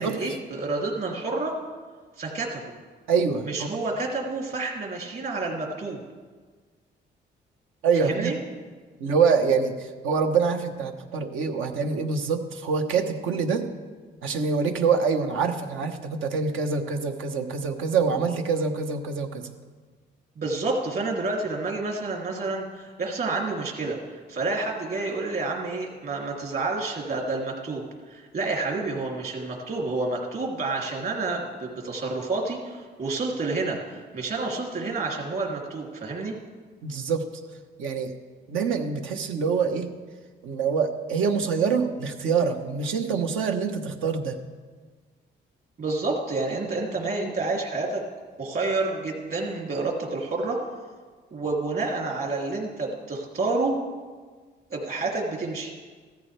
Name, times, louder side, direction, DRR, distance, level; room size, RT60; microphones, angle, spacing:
voice 1, 0.0-1.5 2.2-2.6 3.5-6.0 8.0-8.4 20.4-24.0 24.3-36.4 45.8-48.0 48.4-50.6 51.3-53.8 54.7-55.7, right 3 dB, 50° right, -1 dB, 2.9 m, -29 dB
voice 2, 3.1-3.7 7.8-8.3 9.0-13.6 14.2-19.5 36.8-37.2 37.8-38.1 38.5-39.9 40.4-44.4, right 5 dB, 85° right, 5 dB, 1.2 m, -25 dB
15.5 x 13.5 x 3.4 m, 1.5 s
cardioid pair, 90°, 20 cm